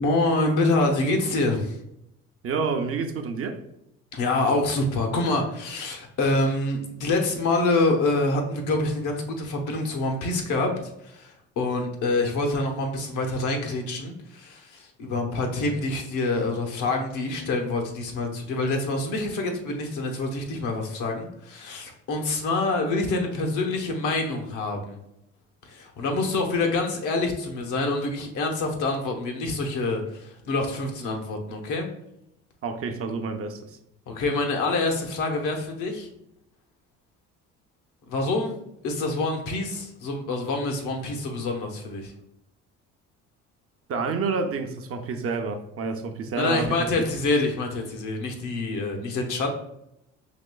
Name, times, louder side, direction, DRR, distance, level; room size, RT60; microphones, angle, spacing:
voice 1, 0.0-1.8 4.1-10.8 11.0-25.0 25.7-31.9 34.1-36.1 38.1-38.6 38.8-42.1 46.4-49.5, left 2 dB, 70° left, 1.0 m, -26 dB
voice 2, 2.4-3.6 32.6-33.8 43.9-46.9, right 4 dB, 45° right, 0.6 m, -29 dB
5.0 x 2.9 x 2.3 m
supercardioid pair, 90°, 32 cm